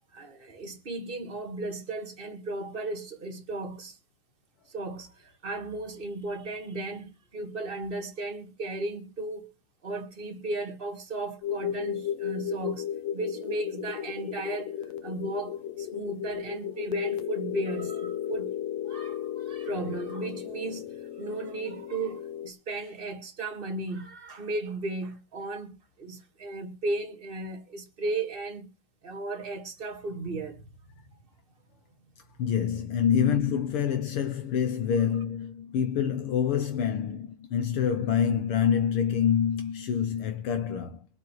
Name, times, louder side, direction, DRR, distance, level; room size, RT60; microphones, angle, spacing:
voice 1, 0.1-4.0 4.7-9.5 9.8-12.9 13.1-14.7 15.0-18.5 18.8-28.7 29.0-30.6, right 2 dB, 25° right, 1.5 m, -35 dB
sound 1, 11.4-22.5, left 10 dB, 85° left, 2.6 m, -34 dB
voice 2, 32.4-41.1, left 8 dB, 70° left, 1.3 m, -26 dB
24.0 x 8.3 x 3.2 m
omnidirectional pair, 3.7 m